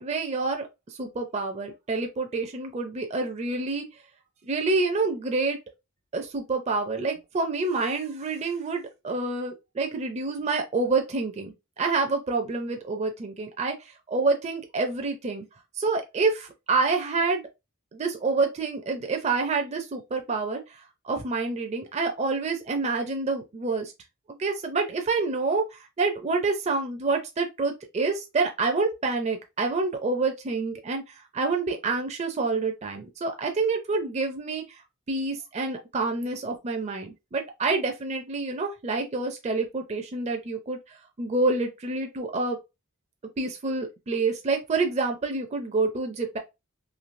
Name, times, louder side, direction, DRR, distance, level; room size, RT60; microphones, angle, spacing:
voice 1, 0.0-3.8 4.5-5.6 6.1-15.5 15.8-17.4 17.9-23.9 24.4-34.8 35.1-42.6 43.4-46.4, right 3 dB, 30° right, 0.4 m, -28 dB
3.1 x 2.7 x 2.5 m
head